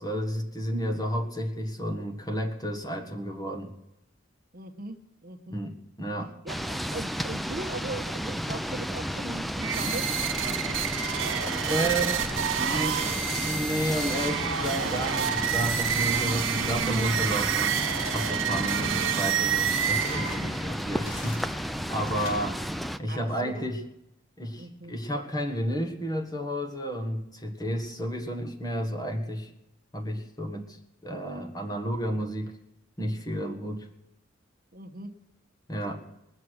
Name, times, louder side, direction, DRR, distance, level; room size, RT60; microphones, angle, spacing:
voice 1, 0.0-3.7 5.5-6.3 11.7-22.6 23.0-23.8 24.4-29.5 29.9-32.5 33.0-33.9 35.7-36.0, equal, 20° left, 3 dB, 1.6 m, -32 dB
voice 2, 4.5-5.6 6.4-10.8 11.8-12.2 12.6-13.3 23.1-23.7 24.6-24.9 34.7-35.1, right 2 dB, 50° right, 6 dB, 1.1 m, -40 dB
sound 1, 6.5-23.0, equal, ahead, 0.4 m, -33 dB
sound 2, 9.6-20.7, right 8 dB, 90° right, 0.9 m, -28 dB
sound 3, 15.7-16.4 16.7-17.3 17.7-18.2 18.5-19.1 19.6-20.4 20.9-21.5 21.9-22.4, left 1 dB, 80° left, 6.6 m, -43 dB
21.0 x 7.2 x 6.5 m, 0.88 s
head